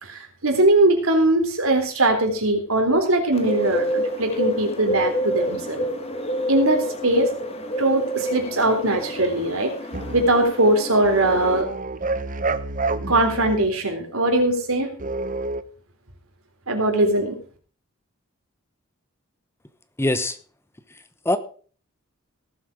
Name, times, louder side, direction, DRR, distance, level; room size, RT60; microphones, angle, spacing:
voice 1, 0.0-5.9 6.5-7.3 7.8-9.7 10.1-11.7 13.1-14.9 16.7-17.4, right 1 dB, 85° right, 5 dB, 3.8 m, -20 dB
Bird, 3.3-11.6, right 1 dB, 30° left, 2.3 m, -28 dB
sound 1, 9.9-10.3 11.0-13.6 15.0-15.6, right 3 dB, 40° right, 0.8 m, -28 dB
voice 2, 20.0-20.4 20.9-21.4, left 1 dB, 10° left, 12 dB, 0.9 m, -24 dB
18.0 x 8.0 x 4.9 m, 0.42 s
head